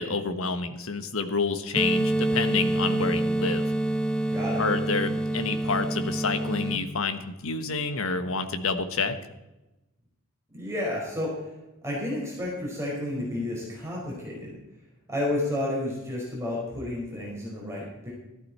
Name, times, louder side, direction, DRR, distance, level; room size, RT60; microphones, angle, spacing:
voice 1, 0.0-3.6 4.6-9.2, left 4 dB, 80° left, 9 dB, 1.3 m, -28 dB
sound 1, 1.8-6.8, right 1 dB, 5° left, 0.7 m, -27 dB
voice 2, 4.3-4.6 10.5-11.3 11.8-14.6 15.1-18.1, left 1 dB, 15° right, -5 dB, 5.0 m, -31 dB
14.0 x 12.5 x 4.3 m, 1.0 s
head